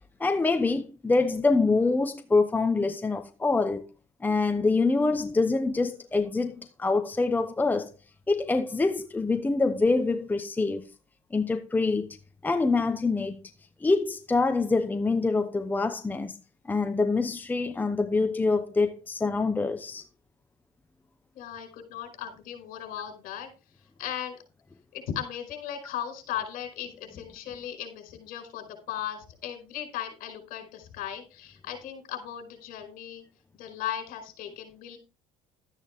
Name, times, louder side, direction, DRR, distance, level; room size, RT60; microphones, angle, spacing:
voice 1, 0.2-3.9 4.2-7.9 8.3-10.9 11.3-12.1 12.4-13.4 13.8-16.3 16.7-20.0, left 3 dB, 10° left, 0.9 m, -25 dB
voice 2, 21.3-23.5 24.0-24.4 24.9-33.2 33.5-35.0, left 10 dB, 65° left, 5.0 m, -37 dB
13.0 x 9.1 x 3.6 m
cardioid pair, 115°, 16 cm